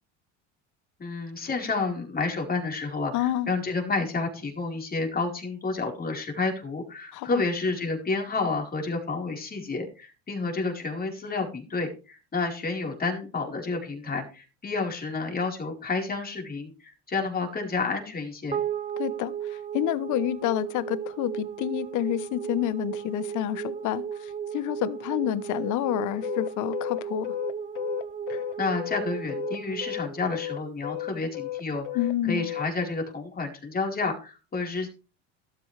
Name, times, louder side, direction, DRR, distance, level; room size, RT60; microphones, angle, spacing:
voice 1, 1.0-18.6 28.6-31.8 32.3-34.9, left 3 dB, 25° left, 4.5 m, -30 dB
voice 2, 3.1-3.5 7.1-7.4 19.0-27.3 31.9-32.5, left 13 dB, 60° left, 1.1 m, -29 dB
sound 1, 18.5-31.0, right 8 dB, 20° right, 0.8 m, -35 dB
sound 2, 26.2-29.6 29.8-32.7, left 14 dB, 85° left, 0.9 m, -33 dB
12.5 x 12.5 x 3.4 m
supercardioid pair, 95°, 34 cm